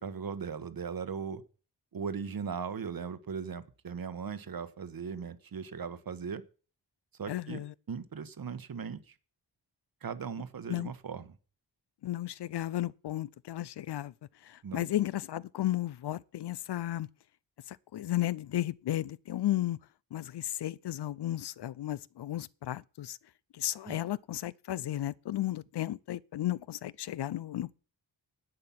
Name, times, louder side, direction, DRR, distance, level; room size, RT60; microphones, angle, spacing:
voice 1, 0.0-1.4 1.9-6.4 7.2-7.6 7.9-9.1 10.0-11.4 14.6-14.8 23.9-24.0, right 6 dB, 50° right, 1.1 m, -38 dB
voice 2, 7.3-7.7 10.7-10.9 12.0-14.1 14.4-17.1 17.7-19.8 20.1-23.2 23.5-27.8, left 13 dB, 65° left, 0.5 m, -34 dB
11.0 x 8.9 x 5.8 m
wide cardioid pair, 125°, 44 cm